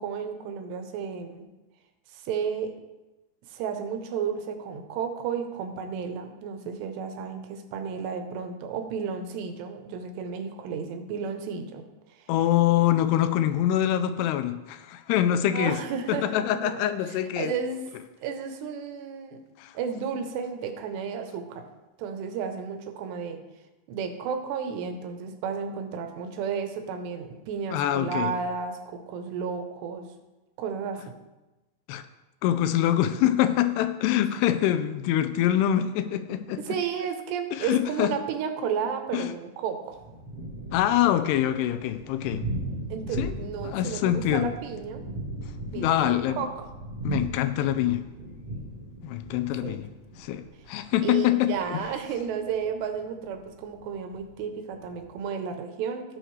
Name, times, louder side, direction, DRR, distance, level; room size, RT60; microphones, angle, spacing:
voice 1, 0.0-1.5 2.1-2.7 3.5-11.8 12.1-12.3 15.5-16.8 17.1-17.8 18.2-19.4 19.7-21.7 22.0-23.4 23.9-30.1 30.6-31.2 36.6-40.0 42.9-45.0 45.7-46.7 49.6-49.8 51.0-56.0, right 6 dB, 85° right, 6 dB, 3.0 m, -33 dB
voice 2, 12.3-15.8 16.1-17.5 19.6-19.8 27.7-28.3 31.9-32.0 32.4-36.6 37.5-38.1 39.1-39.3 40.7-42.4 43.1-43.3 43.6-44.5 45.7-46.5 47.0-48.0 49.0-49.9 50.2-51.8, left 12 dB, 85° left, 10 dB, 2.5 m, -25 dB
Thunder, 39.9-55.2, right 1 dB, 60° right, 1.6 m, -38 dB
16.5 x 6.4 x 3.2 m, 1.1 s
omnidirectional pair, 4.8 m